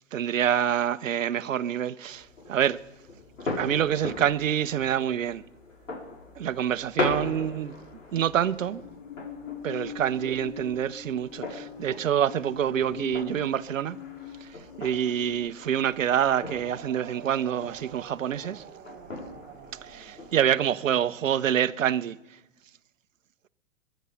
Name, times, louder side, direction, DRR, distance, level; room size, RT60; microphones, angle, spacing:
voice 1, 0.1-2.8 3.6-5.4 6.4-7.8 8.1-8.8 9.6-14.0 14.4-18.6 19.8-22.2, right 9 dB, 75° right, 0.8 m, -26 dB
sound 1, 2.0-20.4, left 3 dB, 80° left, 5.7 m, -39 dB
Musical instrument, 8.6-15.4, left 9 dB, 65° left, 2.7 m, -43 dB
sound 2, 16.7-21.3, right 11 dB, 25° right, 1.1 m, -48 dB
22.5 x 9.2 x 5.7 m
hypercardioid pair, 110°, 39 cm